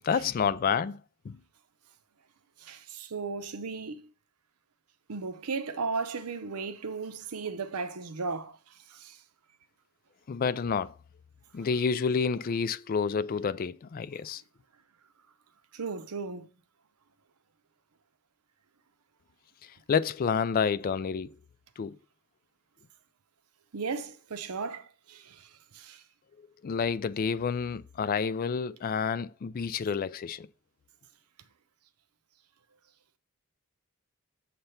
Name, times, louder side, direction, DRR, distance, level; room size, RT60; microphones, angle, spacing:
voice 1, 0.0-1.4 10.3-10.9 11.5-14.4 19.9-21.3 21.8-22.0 26.6-30.5, left 6 dB, 40° left, 0.3 m, -29 dB
voice 2, 2.6-4.0 5.1-8.6 8.9-9.2 15.7-16.5 23.7-26.0, right 4 dB, 85° right, 0.8 m, -36 dB
7.8 x 3.4 x 5.6 m
head